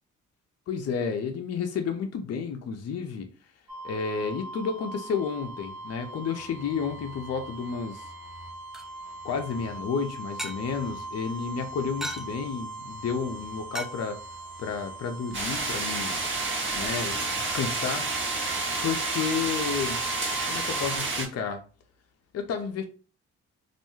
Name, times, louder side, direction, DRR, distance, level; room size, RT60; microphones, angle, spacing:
voice 1, 0.7-3.3 3.8-8.1 9.2-14.2 14.6-16.2 16.7-18.1 18.8-20.0 20.5-21.6 22.3-22.8, left 6 dB, 45° left, 0.6 m, -31 dB
sound 1, 3.7-21.0, right 2 dB, 75° right, 1.0 m, -40 dB
sound 2, 8.3-17.6, right 1 dB, ahead, 0.5 m, -44 dB
sound 3, 15.3-21.3, right 3 dB, 35° right, 0.9 m, -30 dB
2.4 x 2.2 x 3.0 m
hypercardioid pair, 50°, 35 cm